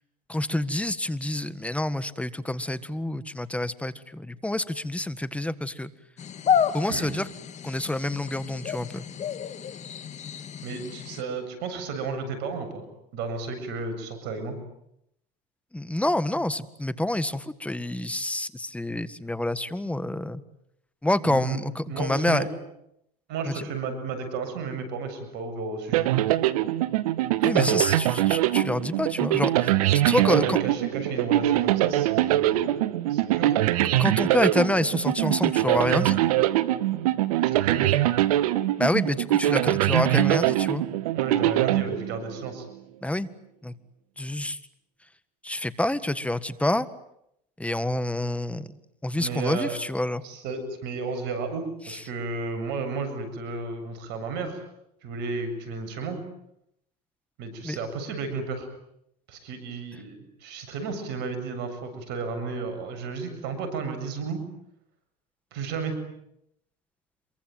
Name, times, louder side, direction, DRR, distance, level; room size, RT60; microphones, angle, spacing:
voice 1, 0.3-5.9 6.7-7.3 7.6-9.1 15.7-20.4 21.0-22.5 23.5-23.7 27.4-29.8 30.0-30.6 34.0-36.2 38.8-40.8 43.0-43.3 43.6-43.7 44.2-44.6 45.4-46.9 47.6-48.7 49.0-50.2 51.9-52.0 57.6-57.8, left 1 dB, 5° left, 14 dB, 1.8 m, -27 dB
sound 1, 6.2-11.2, left 8 dB, 40° left, 2.1 m, -30 dB
voice 2, 10.6-12.8 13.1-14.6 21.3-21.6 21.9-22.5 23.3-26.2 30.2-33.6 37.4-37.9 41.1-42.7 49.2-49.7 50.2-54.6 55.0-56.2 57.4-58.7 59.3-64.4 65.5-65.9, right 4 dB, 65° right, 9 dB, 7.7 m, -33 dB
sound 2, 25.9-42.5, right 14 dB, 80° right, 1.3 m, -23 dB
27.0 x 23.5 x 9.4 m, 0.77 s
hypercardioid pair, 85°, 19 cm